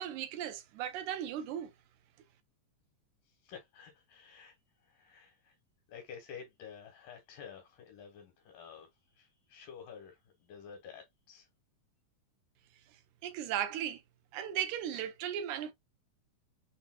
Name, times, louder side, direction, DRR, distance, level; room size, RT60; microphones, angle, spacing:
voice 1, 0.0-1.7 13.2-14.0 14.3-15.7, right 10 dB, 75° right, 2.1 m, -36 dB
voice 2, 3.4-4.5 4.9-5.5 5.9-8.9 9.2-11.5, left 7 dB, 85° left, 2.9 m, -50 dB
6.6 x 2.7 x 2.3 m
omnidirectional pair, 3.7 m